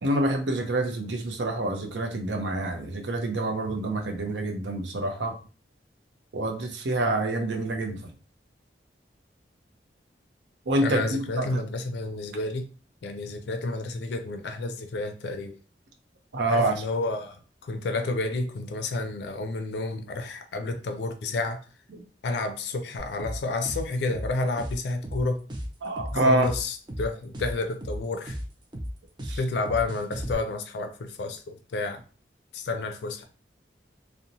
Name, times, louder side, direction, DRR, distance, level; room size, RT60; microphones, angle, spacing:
voice 1, 0.0-5.3 6.3-8.0 10.7-11.6 16.3-16.7 25.8-26.5 29.2-29.4, right 2 dB, 80° right, 3 dB, 0.6 m, -27 dB
voice 2, 10.8-12.7 13.0-15.5 16.5-21.6 22.2-25.4 26.1-28.4 29.4-32.0 32.5-33.2, left 3 dB, 70° left, 6 dB, 0.4 m, -30 dB
sound 1, 23.0-30.3, equal, 25° right, 0.4 m, -35 dB
2.9 x 2.1 x 2.5 m, 0.37 s
head